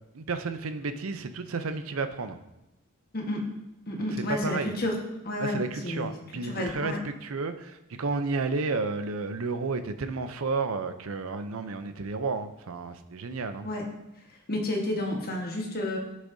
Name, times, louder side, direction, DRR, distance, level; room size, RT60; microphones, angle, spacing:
voice 1, 0.1-2.4 4.1-4.7 5.4-13.7, right 3 dB, 70° right, 9 dB, 0.6 m, -32 dB
voice 2, 3.1-3.4 3.9-5.0 5.2-6.1 6.4-7.0 13.6-13.8 14.5-16.0, left 1 dB, 45° left, 0 dB, 1.4 m, -30 dB
11.5 x 6.4 x 2.7 m, 0.92 s
head